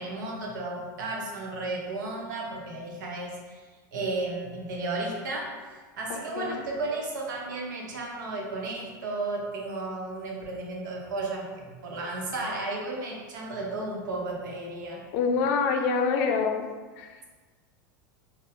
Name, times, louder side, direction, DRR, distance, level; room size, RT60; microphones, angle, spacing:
voice 1, 0.0-3.6 3.9-5.5 6.0-15.0, right 2 dB, 80° right, -1 dB, 0.7 m, -33 dB
voice 2, 15.1-16.7 17.0-17.1, left 5 dB, 60° left, 4 dB, 0.4 m, -26 dB
3.9 x 2.0 x 2.5 m, 1.4 s
hypercardioid pair, 95°, 10 cm